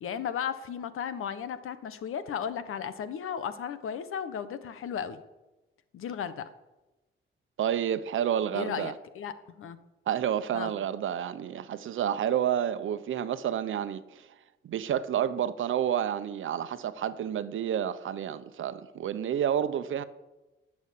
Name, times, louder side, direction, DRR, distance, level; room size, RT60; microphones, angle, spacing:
voice 1, 0.0-5.2 5.9-6.5 8.5-9.8 10.5-10.7, left 8 dB, 90° left, 1.3 m, -35 dB
voice 2, 7.6-8.9 10.1-14.3 14.6-20.0, right 9 dB, 70° right, 0.9 m, -30 dB
19.5 x 7.2 x 8.5 m
wide cardioid pair, 170°, 21 cm